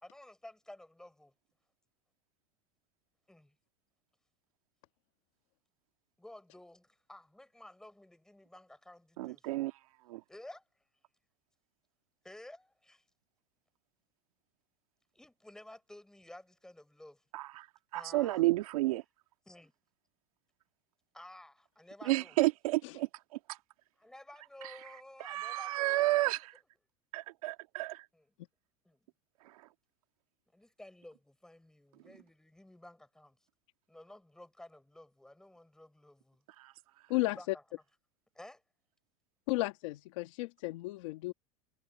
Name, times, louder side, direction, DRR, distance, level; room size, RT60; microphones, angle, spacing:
voice 1, 0.0-1.3 3.3-3.5 6.2-9.6 10.3-10.6 12.2-13.0 15.1-17.2 17.9-18.5 19.4-19.7 21.1-22.4 24.0-26.5 28.1-28.3 28.8-29.1 30.5-33.4 33.9-36.4 37.1-37.6 38.3-38.6, left 1 dB, 5° left, 5.0 m, -53 dB
voice 2, 9.2-9.7 10.1-10.2 17.3-17.7 17.9-19.0 22.1-23.1 23.5-23.6 25.2-26.4 27.1-28.0 36.6-36.7, right 18 dB, 80° right, 1.9 m, -31 dB
voice 3, 39.5-41.3, left 21 dB, 60° left, 1.8 m, -34 dB
supercardioid pair, 165°, 18 cm